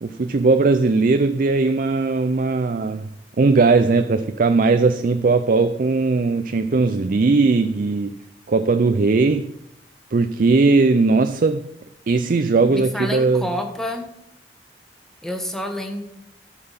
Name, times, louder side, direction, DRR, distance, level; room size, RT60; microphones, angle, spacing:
voice 1, 0.0-3.1 3.4-8.2 8.5-9.5 10.1-11.6 12.1-13.4, right 3 dB, 50° right, 0.4 m, -18 dB
voice 2, 12.7-14.1 15.2-16.0, left 1 dB, 5° left, 1.3 m, -28 dB
13.0 x 5.8 x 5.7 m
head